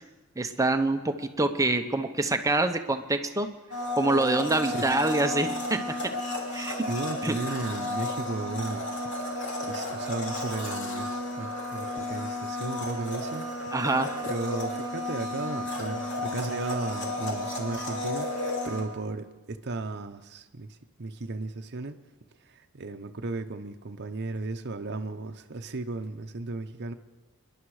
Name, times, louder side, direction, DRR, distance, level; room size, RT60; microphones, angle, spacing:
voice 1, 0.4-3.5 3.9-5.8 6.5-6.9 7.2-7.3 13.7-14.2, right 2 dB, 15° right, 6 dB, 0.8 m, -26 dB
Domestic sounds home sounds, 3.7-18.8, left 1 dB, 60° left, 2.8 m, -33 dB
voice 2, 6.9-8.9 9.6-13.5 14.2-22.0 22.5-26.9, right 2 dB, 50° right, 6 dB, 0.8 m, -35 dB
25.0 x 11.0 x 4.9 m, 1.2 s
head